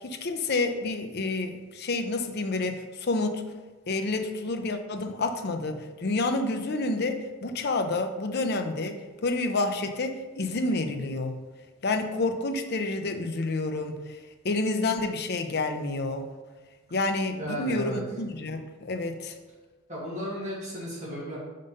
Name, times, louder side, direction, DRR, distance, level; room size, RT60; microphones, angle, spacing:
voice 1, 0.0-3.4 3.9-9.0 9.2-11.4 11.8-14.2 14.4-16.3 16.9-19.3, left 2 dB, 50° left, 6 dB, 0.6 m, -29 dB
voice 2, 17.4-18.0 19.9-21.4, equal, 35° right, -7 dB, 2.1 m, -34 dB
5.3 x 5.2 x 5.4 m, 1.2 s
head